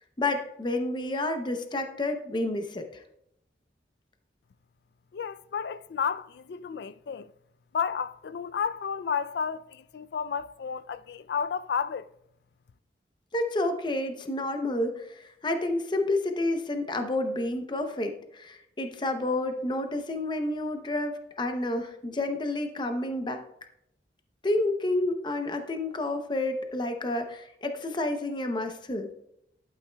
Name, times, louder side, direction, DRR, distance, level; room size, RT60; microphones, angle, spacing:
voice 1, 0.2-3.0 13.3-23.4 24.4-29.1, left 2 dB, 25° left, 0.6 m, -30 dB
voice 2, 5.1-7.3 7.7-12.1, left 6 dB, 65° left, 0.3 m, -32 dB
11.5 x 8.9 x 2.2 m
head